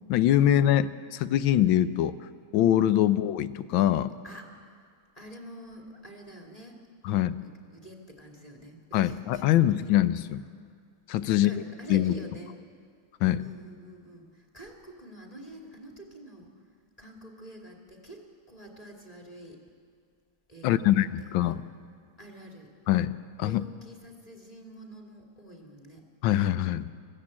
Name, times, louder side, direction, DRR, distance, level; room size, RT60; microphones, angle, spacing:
voice 1, 0.1-2.1 2.5-4.1 7.0-7.3 8.9-10.4 11.1-11.5 11.9-12.1 13.2-13.4 20.6-21.6 22.9-23.1 23.4-23.6 26.2-26.9, left 12 dB, 75° left, 14 dB, 1.4 m, -23 dB
voice 2, 4.2-4.9 5.1-9.9 11.2-12.6 13.4-16.5 17.0-19.6 20.5-21.6 22.2-22.7 23.4-26.1, right 1 dB, 15° left, 1 dB, 2.5 m, -47 dB
20.0 x 15.5 x 8.6 m, 2.1 s
omnidirectional pair, 2.3 m